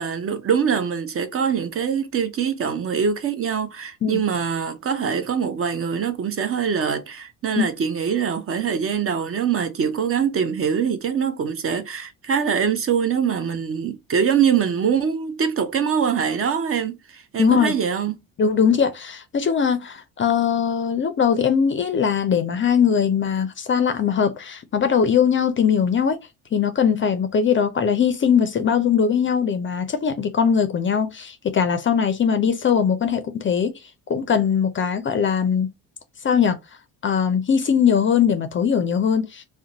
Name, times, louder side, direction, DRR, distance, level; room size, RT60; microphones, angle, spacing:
voice 1, 0.0-18.2, right 7 dB, 35° right, 0.5 m, -23 dB
voice 2, 17.4-17.7 18.4-26.2 26.5-33.7 34.1-35.7 36.2-36.6 37.0-39.4, left 7 dB, 30° left, 0.4 m, -20 dB
2.4 x 2.1 x 2.8 m
supercardioid pair, 70°, 39 cm